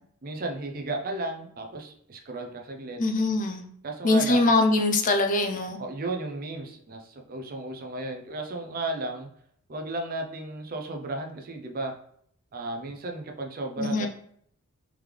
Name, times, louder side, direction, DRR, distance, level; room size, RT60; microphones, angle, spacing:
voice 1, 0.2-3.0 3.8-4.5 5.8-9.3 9.7-11.9 12.5-14.1, right 2 dB, 40° right, 3 dB, 0.5 m, -34 dB
voice 2, 3.0-3.7 4.0-5.8 13.8-14.1, left 2 dB, 35° left, 5 dB, 0.4 m, -23 dB
3.6 x 3.1 x 3.3 m, 0.65 s
head